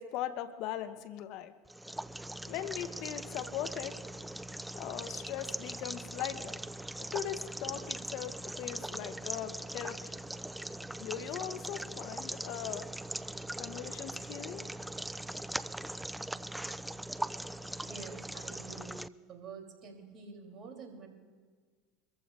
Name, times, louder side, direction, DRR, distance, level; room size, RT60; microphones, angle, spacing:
voice 1, 0.0-1.5 2.5-4.0 4.7-6.6 7.0-10.1 11.0-12.9 13.6-14.6, left 11 dB, 60° left, 12 dB, 0.8 m, -40 dB
sound 1, 1.7-19.1, right 1 dB, 5° right, 0.3 m, -41 dB
voice 2, 17.4-19.0 19.3-21.1, right 5 dB, 45° right, 2 dB, 3.1 m, -48 dB
24.5 x 14.5 x 2.5 m, 1.5 s
hypercardioid pair, 90°, 0 cm